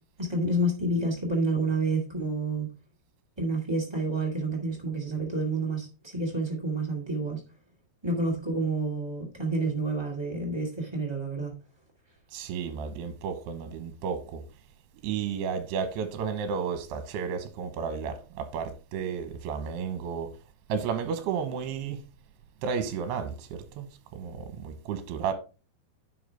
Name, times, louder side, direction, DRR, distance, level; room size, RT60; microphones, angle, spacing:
voice 1, 0.2-2.7 3.4-7.4 8.0-11.5, right 2 dB, 35° right, 0.4 m, -29 dB
voice 2, 12.3-14.4 15.0-20.3 20.7-22.0 22.6-25.3, right 6 dB, 75° right, 3.0 m, -32 dB
10.5 x 5.9 x 3.4 m
omnidirectional pair, 4.9 m